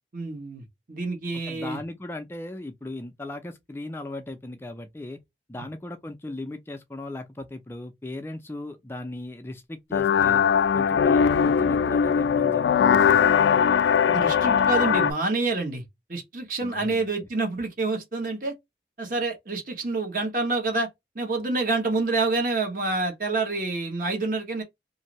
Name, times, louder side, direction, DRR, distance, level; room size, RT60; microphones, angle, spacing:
voice 1, 0.1-1.8 14.1-15.8 16.1-18.5 19.0-20.9 21.1-24.6, right 3 dB, 50° right, 1.1 m, -27 dB
voice 2, 1.4-5.2 5.5-10.4 10.7-13.3 16.6-17.1, left 2 dB, 15° left, 0.3 m, -37 dB
sound 1, 9.9-15.1, left 7 dB, 85° left, 0.3 m, -20 dB
2.7 x 2.6 x 2.9 m
head